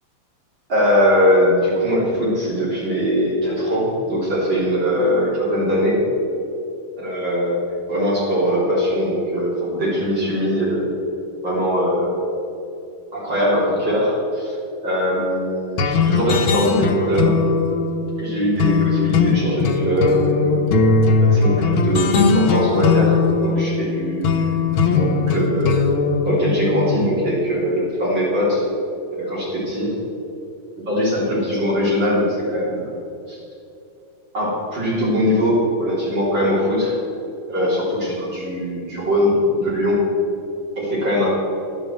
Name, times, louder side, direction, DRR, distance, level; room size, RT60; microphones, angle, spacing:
voice 1, 0.7-6.0 7.0-7.6 7.9-10.9 11.4-12.1 13.1-14.6 14.8-17.4 18.2-20.7 21.2-25.8 26.2-28.6 29.1-29.9 30.8-32.9 33.3-33.4 34.3-36.9 37.5-40.0 40.8-41.3, equal, 55° right, -8 dB, 4.2 m, -21 dB
sound 1, 15.8-27.1, left 4 dB, 70° left, 1.7 m, -19 dB
12.0 x 7.9 x 7.9 m, 2.7 s
omnidirectional pair, 2.4 m